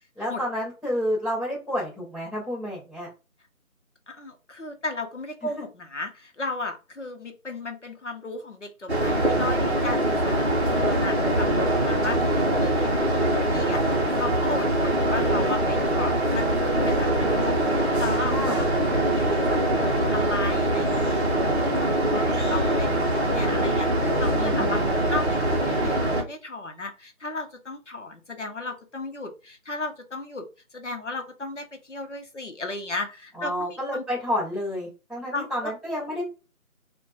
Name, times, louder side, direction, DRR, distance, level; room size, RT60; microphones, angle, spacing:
voice 1, 0.2-3.1 5.4-5.5 18.2-18.6 24.4-24.8 33.4-36.2, equal, ahead, -14 dB, 0.9 m, -30 dB
voice 2, 4.1-18.8 19.1-30.4 30.7-34.0 35.3-35.7, left 2 dB, 55° left, 5 dB, 0.6 m, -35 dB
sound 1, 8.9-26.2, right 1 dB, 50° right, 0.6 m, -23 dB
2.8 x 2.1 x 2.3 m, 0.31 s
figure-of-eight pair, 180°, 43 cm